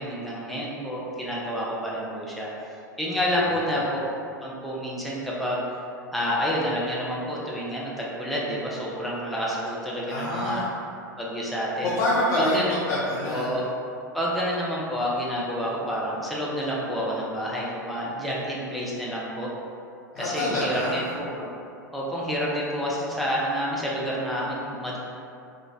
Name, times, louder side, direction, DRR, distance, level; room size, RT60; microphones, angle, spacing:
voice 1, 0.0-2.5 3.0-3.8 4.4-5.6 6.1-10.6 11.2-11.9 12.4-12.8 13.3-13.7 14.1-19.5 20.2-21.5 21.9-25.0, equal, ahead, -6 dB, 0.6 m, -29 dB
voice 2, 3.3-3.8 10.1-10.6 11.8-13.6 20.1-21.0, left 1 dB, 45° left, -10 dB, 0.7 m, -27 dB
3.7 x 2.4 x 2.6 m, 2.5 s
figure-of-eight pair, 85°, 10 cm